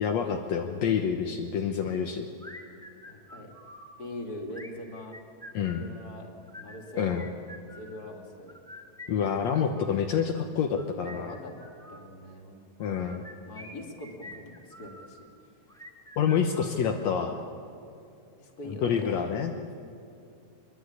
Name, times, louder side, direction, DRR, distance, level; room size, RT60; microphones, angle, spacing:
voice 1, 0.0-2.3 5.5-5.8 7.0-7.3 9.1-11.3 12.8-13.2 16.2-17.4 18.7-19.5, left 7 dB, 70° left, 3 dB, 2.3 m, -27 dB
sound 1, 2.4-3.9 4.5-5.9 6.4-8.0 8.5-10.1 10.6-12.1 12.8-15.1 15.7-17.2, left 1 dB, ahead, 2.3 m, -47 dB
voice 2, 3.1-3.5 4.0-5.2 5.7-6.3 6.6-7.3 7.7-8.6 11.0-11.5 11.9-12.6 12.9-13.2 13.4-15.3 18.4-19.3, left 1 dB, 30° left, 2 dB, 3.0 m, -42 dB
24.5 x 22.0 x 9.6 m, 2.6 s
omnidirectional pair, 3.4 m